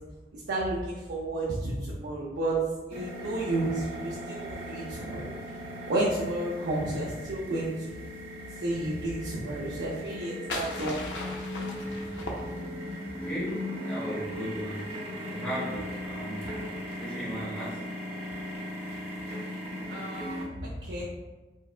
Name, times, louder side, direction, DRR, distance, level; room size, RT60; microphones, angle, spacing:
voice 1, 0.3-2.6 2.9-5.3 5.9-8.0 8.6-11.2 19.9-21.0, right 1 dB, 85° right, -6 dB, 0.5 m, -32 dB
sound 1, 2.9-20.4, left 1 dB, 35° right, 0.7 m, -38 dB
sound 2, 10.0-13.0, left 2 dB, 80° left, 0.4 m, -38 dB
voice 2, 13.1-14.9 15.3-16.5 17.0-17.8, right 1 dB, 5° left, -8 dB, 0.9 m, -36 dB
3.3 x 2.1 x 2.3 m, 1.2 s
head